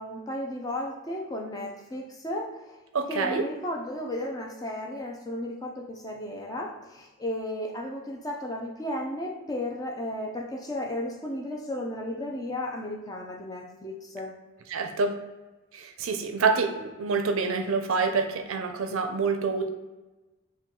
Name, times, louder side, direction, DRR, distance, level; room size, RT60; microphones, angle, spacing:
voice 1, 0.0-2.8 3.1-14.3, left 1 dB, 15° left, 1 dB, 0.4 m, -34 dB
voice 2, 2.9-3.4 14.7-15.1 15.7-19.7, right 4 dB, 70° right, 5 dB, 0.5 m, -27 dB
4.4 x 2.2 x 3.7 m, 1.1 s
head